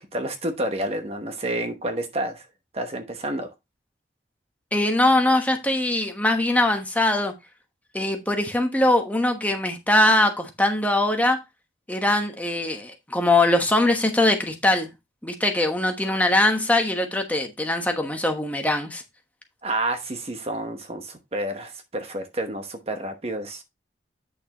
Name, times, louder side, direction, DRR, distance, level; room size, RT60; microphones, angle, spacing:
voice 1, 0.1-2.4 2.7-3.5 19.6-23.6, right 1 dB, 35° right, 1.1 m, -29 dB
voice 2, 4.7-7.3 7.9-11.4 11.9-14.9 15.2-19.0, left 1 dB, 10° left, 1.1 m, -22 dB
8.5 x 6.5 x 2.9 m
head